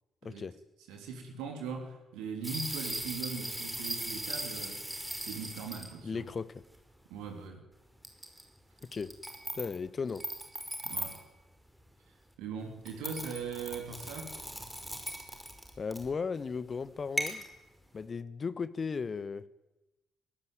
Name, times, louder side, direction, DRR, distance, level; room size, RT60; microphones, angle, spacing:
voice 1, 0.2-0.6 6.0-6.6 8.8-9.2 9.5-10.3 15.8-17.4 17.9-19.4, left 5 dB, 35° left, 1.1 m, -36 dB
voice 2, 0.9-4.9 5.2-6.3 7.1-7.6 10.8-11.2 12.4-14.3, right 5 dB, 65° right, 2.9 m, -40 dB
sound 1, 2.4-5.9 6.6-6.7 8.0-8.4 8.8-9.8 10.1-11.2 12.9-16.1 17.2-17.5, right 1 dB, 5° right, 5.5 m, -38 dB
22.0 x 17.5 x 9.3 m
figure-of-eight pair, 40°, 0 cm